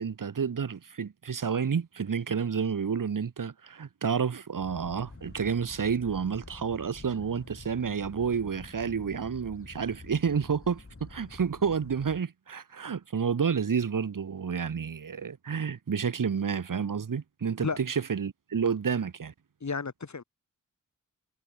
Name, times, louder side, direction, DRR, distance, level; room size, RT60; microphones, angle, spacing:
voice 1, 0.0-19.3, right 6 dB, 75° right, 1.6 m, -30 dB
sound 1, 4.6-12.2, left 3 dB, 40° left, 4.6 m, -48 dB
voice 2, 19.6-20.2, left 4 dB, 60° left, 2.5 m, -32 dB
cardioid pair, 45°, 33 cm